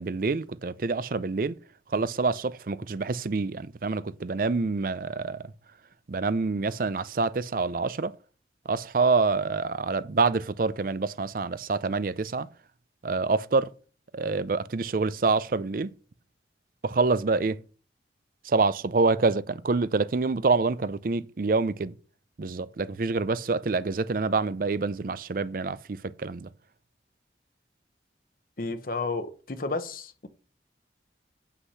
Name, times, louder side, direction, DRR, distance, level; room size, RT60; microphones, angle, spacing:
voice 1, 0.0-1.5 1.9-5.4 6.1-8.1 8.7-12.5 13.0-13.7 14.1-15.9 16.8-17.6 18.5-21.9 22.4-26.5, right 4 dB, 50° right, 0.5 m, -26 dB
voice 2, 28.6-30.3, left 3 dB, 50° left, 0.9 m, -32 dB
8.1 x 5.8 x 5.5 m
head